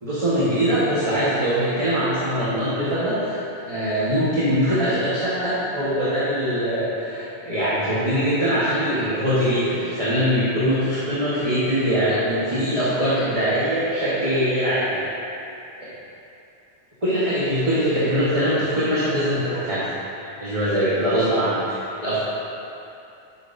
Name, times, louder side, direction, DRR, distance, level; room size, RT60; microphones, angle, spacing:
voice 1, 0.0-3.4 3.7-15.0 15.8-15.9 17.0-19.9 20.2-22.2, equal, 30° right, -11 dB, 1.5 m, -22 dB
11.0 x 6.5 x 2.7 m, 2.7 s
omnidirectional pair, 1.1 m